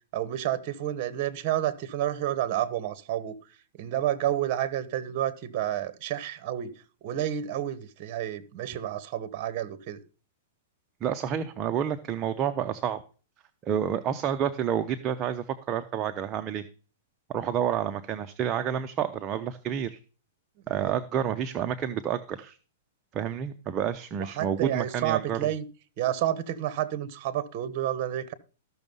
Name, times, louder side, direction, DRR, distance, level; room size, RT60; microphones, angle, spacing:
voice 1, 0.1-3.4 3.8-6.7 7.0-10.0 20.7-20.9 24.3-25.6 26.0-28.3, right 12 dB, 40° right, 15 dB, 1.3 m, -30 dB
voice 2, 11.0-13.0 13.6-16.7 17.3-20.0 20.7-22.6 23.1-25.5, right 9 dB, 25° right, 8 dB, 0.7 m, -29 dB
14.0 x 6.3 x 5.4 m, 0.37 s
hypercardioid pair, 155°, 0 cm